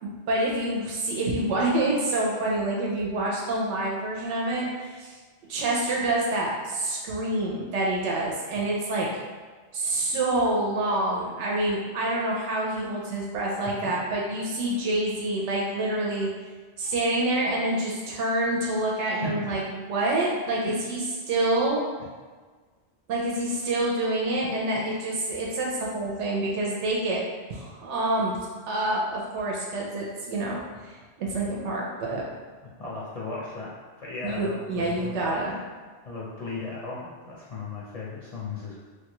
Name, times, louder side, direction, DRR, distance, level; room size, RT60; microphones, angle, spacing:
voice 1, 0.0-4.6 4.9-5.2 5.5-9.1 9.7-16.3 16.8-21.0 21.3-21.8 23.1-27.2 27.5-28.3 28.7-32.2 34.2-35.6, right 2 dB, 90° right, -3 dB, 0.9 m, -27 dB
voice 2, 19.2-19.6 20.7-20.8 24.4-24.5 32.8-33.7 34.0-35.4 36.0-38.8, left 3 dB, 50° left, -7 dB, 0.5 m, -36 dB
3.2 x 2.2 x 2.9 m, 1.4 s
omnidirectional pair, 1.2 m